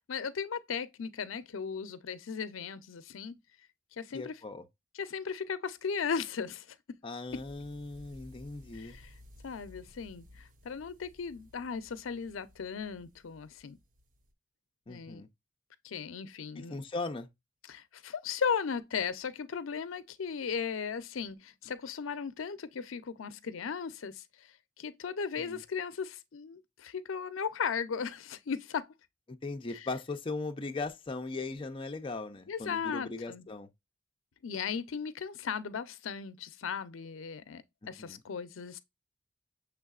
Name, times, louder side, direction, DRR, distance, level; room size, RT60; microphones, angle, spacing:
voice 1, 0.0-3.4 3.9-4.4 4.9-7.0 8.7-9.1 9.4-13.8 14.9-15.2 15.8-16.7 17.7-28.9 29.7-29.9 32.5-33.5 34.4-38.8, left 6 dB, 90° left, 0.5 m, -37 dB
voice 2, 4.1-4.6 7.0-9.0 14.9-15.3 16.6-17.3 25.4-25.6 29.3-33.7 38.0-38.2, left 3 dB, 25° left, 0.5 m, -38 dB
sound 1, 7.3-14.3, left 1 dB, 45° right, 0.6 m, -57 dB
6.4 x 3.4 x 2.3 m
head